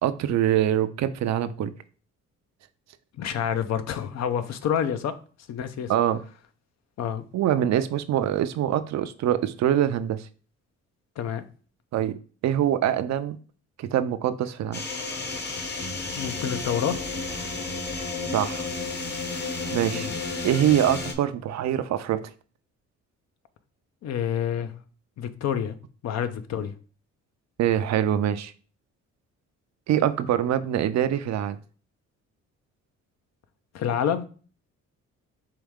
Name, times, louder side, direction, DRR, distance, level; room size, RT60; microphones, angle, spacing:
voice 1, 0.0-1.7 5.9-6.2 7.3-10.2 11.9-12.1 12.4-13.4 13.8-14.8 18.3-18.7 19.7-20.1 20.4-22.2 27.6-28.5 29.9-31.6, right 11 dB, 65° right, 0.5 m, -24 dB
voice 2, 3.2-5.1 5.5-5.9 7.0-7.2 11.2-11.5 15.9-17.0 19.9-20.2 24.0-24.7 25.2-25.8 26.0-26.7 33.7-34.3, left 8 dB, 60° left, 0.6 m, -28 dB
sound 1, 14.7-21.1, left 3 dB, 35° left, 0.9 m, -32 dB
4.7 x 3.1 x 3.5 m
cardioid pair, 90°, 30 cm